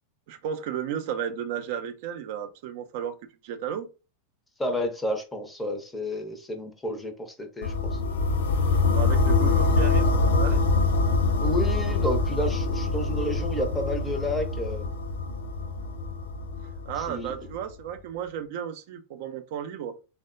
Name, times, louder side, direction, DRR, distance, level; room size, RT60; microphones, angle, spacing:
voice 1, 0.3-3.2 3.4-3.9 8.7-10.6 16.9-19.9, right 9 dB, 50° right, 0.4 m, -34 dB
voice 2, 4.6-8.0 11.4-14.9 17.0-17.3, equal, 10° left, 0.5 m, -31 dB
sound 1, 7.6-17.6, left 3 dB, 60° left, 0.4 m, -24 dB
3.3 x 2.0 x 2.3 m
figure-of-eight pair, 90°, 0 cm